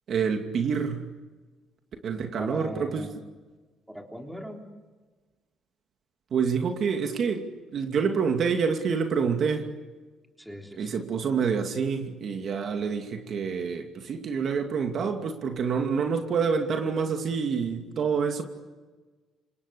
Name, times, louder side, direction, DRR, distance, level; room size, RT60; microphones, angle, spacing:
voice 1, 0.1-1.1 2.0-3.1 6.3-7.5 7.7-9.7 10.8-18.4, right 6 dB, 45° right, 4 dB, 2.6 m, -27 dB
voice 2, 2.4-3.2 3.9-4.6 10.4-11.0, equal, ahead, 2 dB, 3.6 m, -39 dB
29.5 x 26.0 x 7.1 m, 1.3 s
cardioid pair, 140°, 0 cm